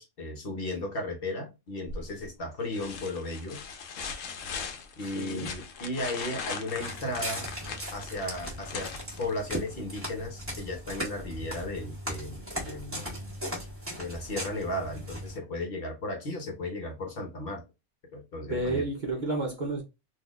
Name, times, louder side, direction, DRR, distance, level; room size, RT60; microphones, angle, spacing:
voice 1, 0.0-3.6 5.0-7.5 7.9-13.1 14.0-17.6 18.1-18.9, left 1 dB, 50° left, 1.0 m, -35 dB
sound 1, 1.9-2.3 2.7-9.7 11.5-11.6, left 5 dB, 90° left, 1.0 m, -39 dB
voice 2, 5.0-5.5 18.4-19.8, right 2 dB, 45° right, 0.7 m, -31 dB
Walk footsteps, 6.7-15.4, equal, 10° right, 1.3 m, -38 dB
3.8 x 2.6 x 2.3 m
omnidirectional pair, 1.3 m